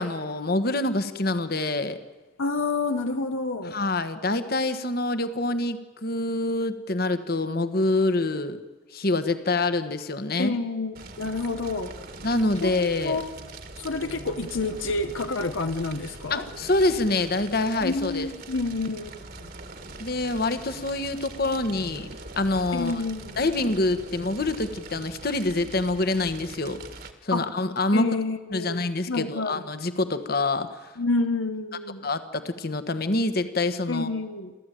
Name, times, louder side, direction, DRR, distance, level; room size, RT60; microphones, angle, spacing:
voice 1, 0.0-2.0 3.6-8.6 8.9-10.5 12.2-13.2 16.3-18.3 20.0-22.1 22.4-23.0 23.4-26.8 27.2-28.1 28.5-30.9 32.0-34.1, left 2 dB, 50° left, 10 dB, 1.4 m, -26 dB
voice 2, 2.4-3.8 10.4-12.0 12.6-13.3 13.8-16.5 17.8-19.5 22.7-23.4 27.3-27.5 27.9-29.5 31.0-32.1 33.9-34.5, left 3 dB, 80° left, 8 dB, 1.0 m, -29 dB
Fire, 10.9-27.1, right 2 dB, 50° right, 1.9 m, -42 dB
28.5 x 13.5 x 9.2 m, 1.3 s
head